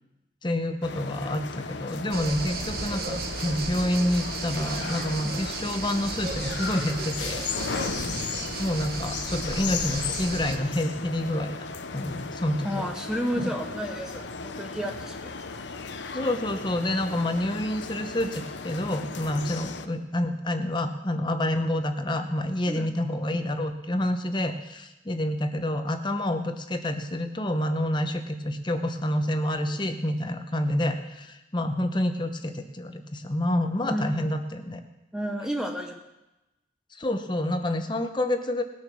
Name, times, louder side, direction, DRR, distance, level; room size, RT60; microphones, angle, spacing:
voice 1, 0.4-7.9 8.6-11.5 11.9-12.9 13.4-13.5 16.1-34.8 36.9-38.6, left 1 dB, 25° left, 6 dB, 0.9 m, -28 dB
sound 1, 0.8-19.9, left 5 dB, 75° left, 0.8 m, -36 dB
sound 2, 2.1-10.6, right 4 dB, 55° right, 1.1 m, -35 dB
voice 2, 7.8-8.3 12.6-15.4 19.6-19.7 22.7-23.0 33.8-34.3 35.1-36.0, equal, 5° right, 3 dB, 0.8 m, -32 dB
19.0 x 6.9 x 6.2 m, 0.99 s
head